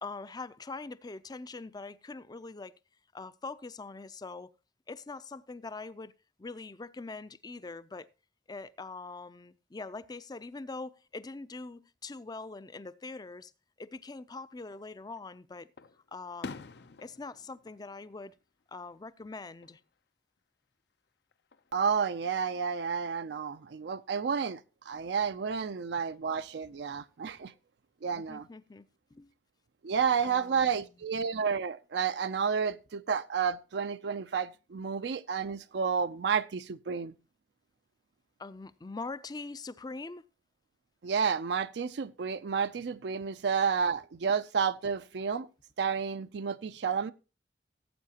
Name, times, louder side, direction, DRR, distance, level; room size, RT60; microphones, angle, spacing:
voice 1, 0.0-2.7 3.1-4.5 4.9-8.1 8.5-13.5 13.8-15.7 16.1-16.7 17.0-18.3 18.7-19.8 26.9-27.0 28.1-28.8 29.1-29.3 30.2-30.9 38.4-40.2, left 3 dB, 20° left, 0.4 m, -43 dB
Fireworks, 14.6-15.3 15.8-18.9 19.2-19.8 21.3-22.1, left 4 dB, 65° left, 0.6 m, -48 dB
voice 2, 21.7-24.6 24.9-27.5 28.0-28.5 29.8-37.1 41.0-45.5 45.8-47.1, right 6 dB, 65° right, 0.4 m, -31 dB
17.0 x 8.4 x 2.9 m
head